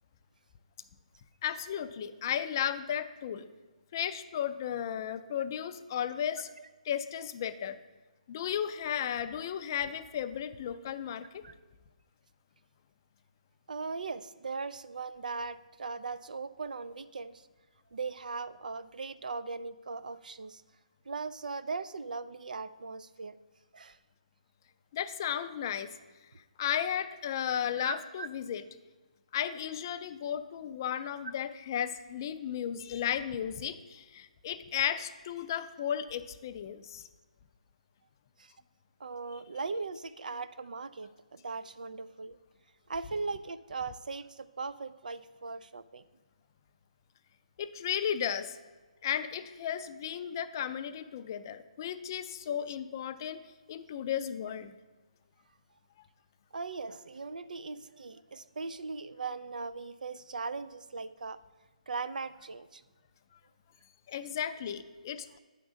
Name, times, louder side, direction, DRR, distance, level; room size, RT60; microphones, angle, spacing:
voice 1, 1.4-3.5 3.9-6.5 6.9-7.8 8.3-11.4 24.9-25.9 26.6-28.6 29.3-37.1 47.6-48.6 49.0-53.4 53.7-54.7 64.1-65.4, left 9 dB, 30° left, 10 dB, 0.3 m, -34 dB
voice 2, 13.7-17.4 17.9-20.6 21.1-23.4 23.7-24.0 27.8-28.3 38.4-38.5 39.0-42.4 42.9-46.0 56.5-61.4 61.9-62.8, right 4 dB, 85° right, 14 dB, 0.4 m, -39 dB
9.1 x 3.6 x 6.2 m, 1.3 s
hypercardioid pair, 165°, 4 cm